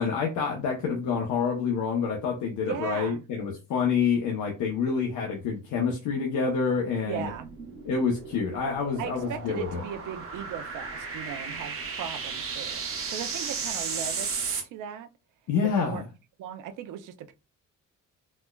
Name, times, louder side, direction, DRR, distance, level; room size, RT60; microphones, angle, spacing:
voice 1, 0.0-7.2 7.8-9.8 15.5-16.0, left 5 dB, 80° left, 0.8 m, -27 dB
voice 2, 2.6-3.2 7.0-7.5 9.0-12.8 13.1-15.1 15.8-16.1 16.4-17.3, right 9 dB, 85° right, 0.5 m, -37 dB
sound 1, 7.2-14.6, right 5 dB, 45° right, 0.9 m, -35 dB
4.2 x 2.1 x 2.2 m
cardioid pair, 150°, 30 cm